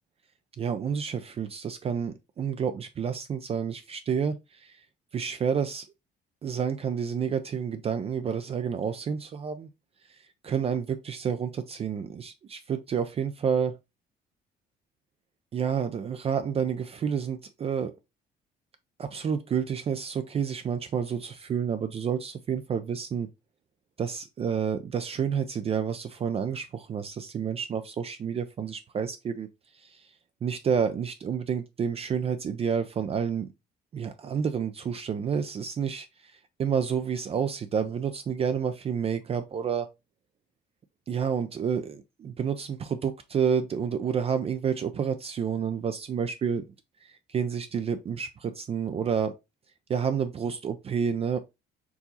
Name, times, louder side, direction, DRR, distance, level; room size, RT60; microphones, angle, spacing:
voice 1, 0.6-4.8 5.1-5.9 6.4-9.7 10.4-13.8 15.5-17.9 19.0-23.3 24.0-29.5 29.7-30.1 30.4-33.5 33.9-36.3 36.6-39.9 41.1-46.6 47.0-49.3 49.9-51.4, right 7 dB, 35° right, 0.4 m, -29 dB
4.7 x 2.7 x 3.9 m
cardioid pair, 110°, 17 cm